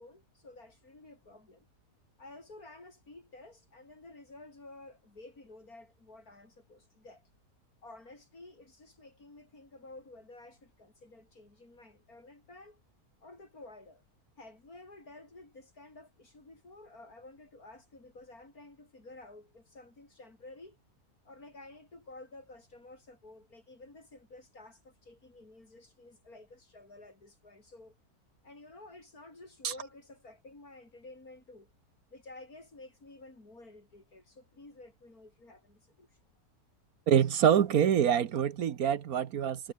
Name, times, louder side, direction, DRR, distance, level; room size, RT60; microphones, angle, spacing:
voice 1, 0.0-1.7 2.2-7.3 7.8-12.8 13.2-14.0 14.4-20.8 21.2-28.0 28.4-31.7 32.1-36.2, left 2 dB, 65° left, 6.3 m, -52 dB
voice 2, 37.1-39.7, right 8 dB, 70° right, 1.5 m, -25 dB
omnidirectional pair, 1.6 m